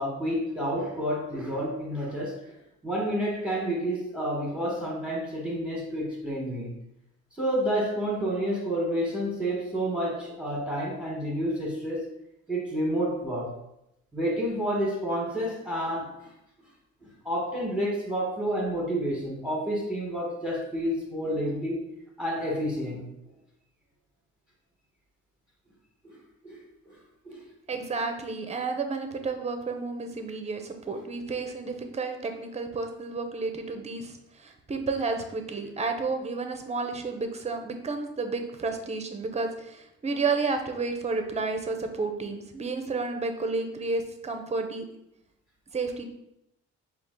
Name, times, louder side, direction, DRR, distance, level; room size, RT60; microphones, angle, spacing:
voice 1, 0.0-2.4 2.8-6.7 7.3-12.1 12.5-13.5 14.1-16.3 17.2-21.8 22.2-23.0 26.0-26.2 26.4-26.6 26.9-27.0 27.2-27.4, equal, 5° right, -3 dB, 1.2 m, -29 dB
voice 2, 27.7-44.9 45.7-46.0, right 4 dB, 20° right, 6 dB, 0.6 m, -31 dB
4.4 x 2.4 x 3.7 m, 0.83 s
cardioid pair, 90°, 30 cm